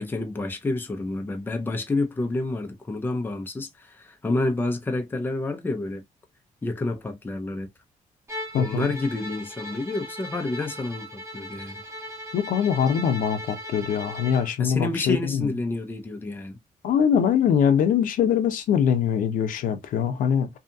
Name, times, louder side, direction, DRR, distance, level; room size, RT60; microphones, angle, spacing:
voice 1, 0.0-6.0 6.6-7.7 8.5-11.8 14.6-16.6, left 2 dB, 15° left, 0.5 m, -29 dB
Bowed string instrument, 8.3-14.5, equal, 20° right, 1.0 m, -38 dB
voice 2, 8.5-8.9 12.3-15.5 16.8-20.5, left 8 dB, 90° left, 0.5 m, -23 dB
2.7 x 2.3 x 2.5 m
cardioid pair, 140°, 13 cm